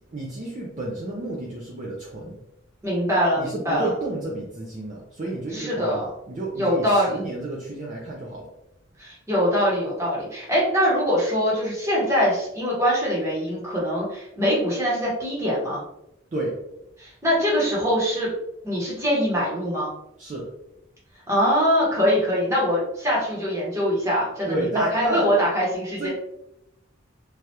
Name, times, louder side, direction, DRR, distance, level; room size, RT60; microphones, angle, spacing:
voice 1, 0.1-2.4 3.4-8.5 16.3-16.6 20.2-20.5 24.5-25.3 26.0-26.1, right 1 dB, 35° right, -3 dB, 0.4 m, -31 dB
voice 2, 2.8-3.9 5.5-6.1 6.6-7.2 9.0-15.8 17.0-18.3 18.6-19.9 21.3-26.1, equal, 15° right, -6 dB, 1.0 m, -23 dB
3.2 x 2.4 x 2.8 m, 0.84 s
head